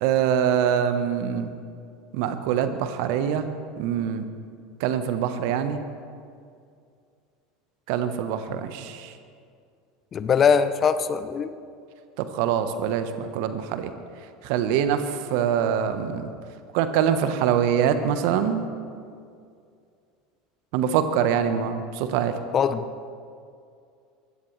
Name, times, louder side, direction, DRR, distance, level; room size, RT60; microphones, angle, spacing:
voice 1, 0.0-1.5 2.1-3.5 3.8-4.3 4.8-5.8 7.9-9.1 12.2-13.9 14.4-15.0 15.3-16.3 16.7-18.7 20.7-22.3, right 8 dB, 60° right, 10 dB, 1.1 m, -24 dB
voice 2, 10.1-11.5 22.5-22.8, left 6 dB, 35° left, 12 dB, 0.8 m, -21 dB
22.5 x 15.5 x 3.3 m, 2.4 s
hypercardioid pair, 75°, 0 cm